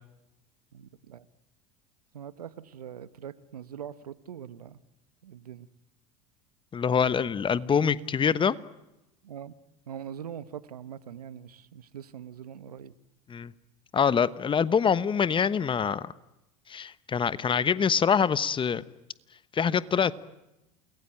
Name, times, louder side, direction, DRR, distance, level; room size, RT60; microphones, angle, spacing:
voice 1, 0.7-1.3 2.1-4.8 5.2-5.7 9.2-9.5 9.9-12.9, right 9 dB, 85° right, 15 dB, 1.1 m, -42 dB
voice 2, 6.7-8.5 13.3-13.5 13.9-16.1 16.7-18.8 19.5-20.2, left 7 dB, 25° left, 16 dB, 1.1 m, -25 dB
29.0 x 21.0 x 8.9 m, 0.95 s
hypercardioid pair, 80°, 19 cm